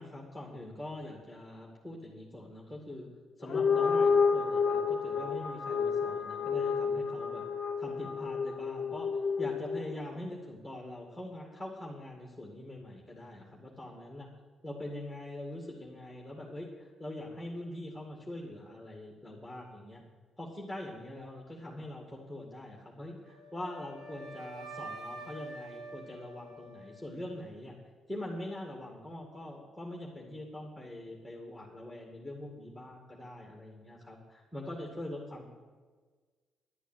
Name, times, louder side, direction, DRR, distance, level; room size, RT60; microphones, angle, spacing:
voice 1, 0.0-3.1 3.4-7.4 7.8-9.1 9.4-14.3 14.6-20.0 20.4-27.8 28.1-35.5, left 1 dB, ahead, -1 dB, 2.3 m, -43 dB
sound 1, 3.4-10.0, left 5 dB, 50° left, 0.7 m, -30 dB
Wind instrument woodwind instrument, 23.2-27.4, right 2 dB, 75° right, 3.0 m, -46 dB
11.0 x 8.1 x 9.2 m, 1.4 s
cardioid pair, 90°, 0 cm